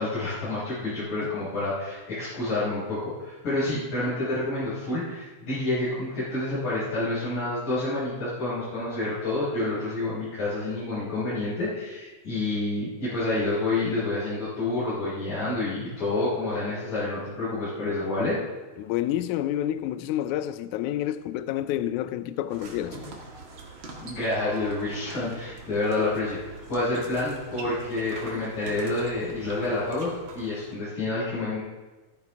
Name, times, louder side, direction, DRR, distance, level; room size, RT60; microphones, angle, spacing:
voice 1, 0.0-18.4 24.0-31.6, left 2 dB, 60° left, 6.4 m, -28 dB
voice 2, 18.8-23.0, left 12 dB, 90° left, 1.7 m, -29 dB
sound 1, 22.5-30.8, right 3 dB, 45° right, 1.8 m, -44 dB
14.5 x 14.0 x 3.6 m
omnidirectional pair, 4.2 m